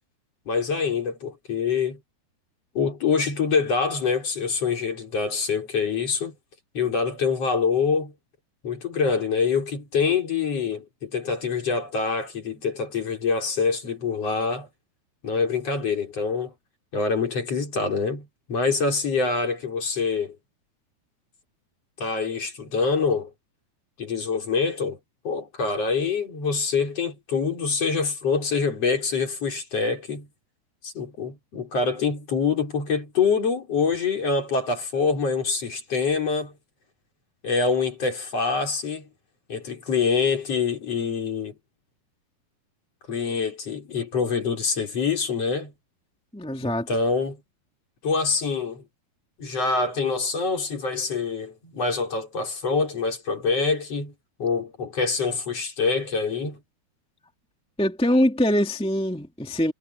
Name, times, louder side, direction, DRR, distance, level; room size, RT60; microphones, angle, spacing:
voice 1, 0.5-2.0 2.8-6.3 6.7-8.1 8.6-14.7 15.2-16.5 16.9-20.4 22.0-23.3 24.0-25.0 25.2-30.3 30.8-36.5 37.4-39.1 39.5-41.6 43.1-45.7 46.6-47.4 48.0-48.8 49.4-54.1 54.4-56.6, left 5 dB, 40° left, 5.2 m, -25 dB
voice 2, 46.3-46.9 57.8-59.7, equal, ahead, 1.8 m, -23 dB
omnidirectional pair, 4.7 m